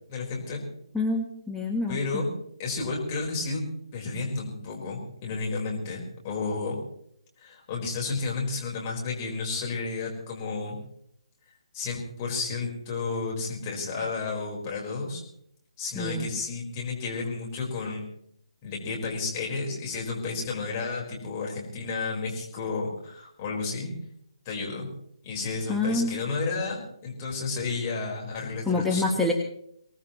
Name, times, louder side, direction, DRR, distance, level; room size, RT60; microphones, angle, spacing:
voice 1, 0.1-0.6 1.9-2.3 2.6-3.6 3.9-6.8 7.4-10.8 11.7-15.2 15.8-18.1 18.6-23.9 24.4-24.9 25.2-29.2, left 4 dB, 30° left, -2 dB, 4.5 m, -32 dB
voice 2, 0.9-2.2 15.9-16.3 25.7-26.1 28.7-29.3, left 2 dB, ahead, -1 dB, 1.2 m, -27 dB
24.5 x 18.5 x 3.1 m, 0.71 s
figure-of-eight pair, 145°, 3 cm